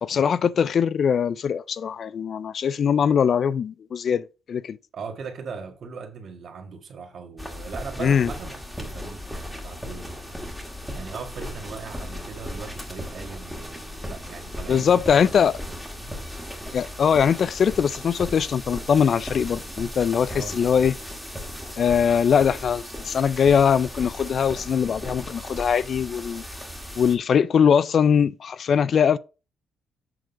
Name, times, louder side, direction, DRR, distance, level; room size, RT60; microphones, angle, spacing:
voice 1, 0.0-4.8 8.0-8.3 14.7-15.6 16.7-20.9 21.8-26.4 27.0-29.2, left 7 dB, 55° left, 0.4 m, -21 dB
voice 2, 4.9-10.1 10.9-15.2 16.0-16.2 20.3-20.9, right 5 dB, 60° right, 1.7 m, -39 dB
sound 1, 7.4-27.2, left 1 dB, 5° left, 1.8 m, -37 dB
7.7 x 3.7 x 5.0 m
cardioid pair, 90°, 0 cm